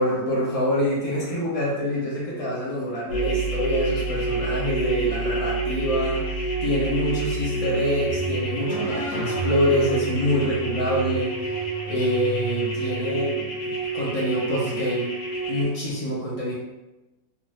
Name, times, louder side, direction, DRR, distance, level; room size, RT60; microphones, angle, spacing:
voice 1, 0.0-6.3 6.6-11.3 11.9-15.1 15.5-16.5, equal, 60° left, -5 dB, 0.3 m, -25 dB
sound 1, 3.1-15.6, right 3 dB, 85° left, 1.2 m, -28 dB
2.5 x 2.4 x 3.0 m, 0.99 s
omnidirectional pair, 1.6 m